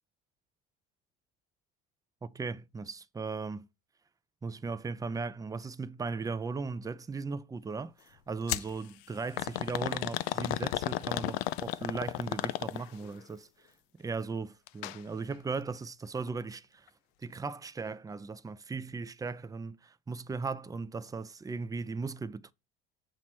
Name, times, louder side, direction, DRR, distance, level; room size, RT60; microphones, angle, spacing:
voice 1, 2.2-3.7 4.4-13.5 14.0-16.9 17.2-22.5, right 4 dB, 10° right, 0.4 m, -37 dB
sound 1, 8.5-8.7 9.4-13.1 14.7-15.0 15.3-15.4 16.3-16.4, left 15 dB, 85° left, 0.5 m, -33 dB
7.5 x 3.0 x 6.0 m
supercardioid pair, 85°, 30 cm